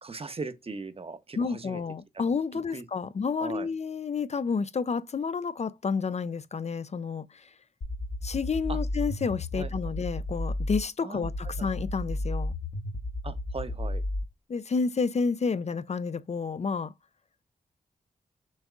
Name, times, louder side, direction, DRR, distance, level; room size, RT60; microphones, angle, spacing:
voice 1, 0.0-1.8 2.1-2.2 2.7-2.8 3.4-3.7 8.7-8.8 9.5-9.7 11.0-11.3 11.6-11.7 13.2-14.0, right 4 dB, 40° right, 0.9 m, -38 dB
voice 2, 1.4-7.5 8.2-12.5 14.5-16.9, left 5 dB, 45° left, 0.5 m, -30 dB
sound 1, 7.8-10.8 11.2-14.2, left 1 dB, 60° left, 1.1 m, -32 dB
6.4 x 3.5 x 2.4 m
cardioid pair, 55°, 16 cm